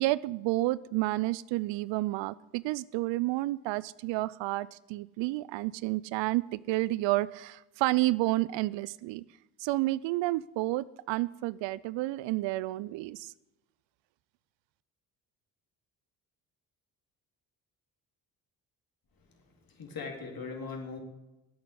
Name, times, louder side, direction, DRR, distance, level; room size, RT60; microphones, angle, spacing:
voice 1, 0.0-9.2 9.6-13.3, right 18 dB, 65° right, 20 dB, 0.6 m, -30 dB
voice 2, 19.2-21.0, left 4 dB, 45° left, 1 dB, 3.9 m, -41 dB
11.0 x 8.6 x 9.3 m, 0.96 s
hypercardioid pair, 50°, 48 cm